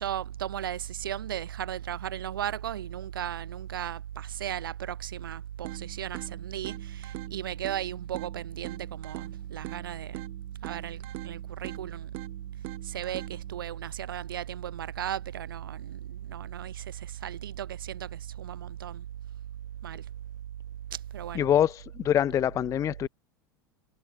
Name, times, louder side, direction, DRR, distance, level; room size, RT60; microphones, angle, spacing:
voice 1, 0.0-10.2 10.6-12.1 12.8-19.0 19.8-20.0 20.9-21.5, right 11 dB, 80° right, 4.1 m, -36 dB
sound 1, 5.6-13.6, right 25 dB, 55° right, 3.5 m, -44 dB
voice 2, 21.3-23.1, left 10 dB, 30° left, 0.4 m, -25 dB
hypercardioid pair, 90°, 11 cm